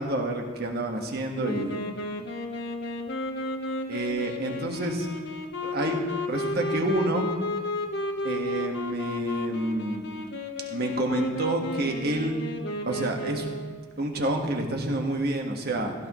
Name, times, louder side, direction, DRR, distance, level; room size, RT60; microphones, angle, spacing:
voice 1, 0.0-1.8 3.9-5.1 5.6-6.0 6.3-7.3 8.2-10.1 10.7-12.4 12.9-13.5 14.0-15.9, right 1 dB, 55° right, 2 dB, 1.6 m, -28 dB
Wind instrument woodwind instrument, 1.4-13.9, left 1 dB, 60° left, 1.1 m, -33 dB
16.0 x 13.5 x 3.1 m, 1.5 s
head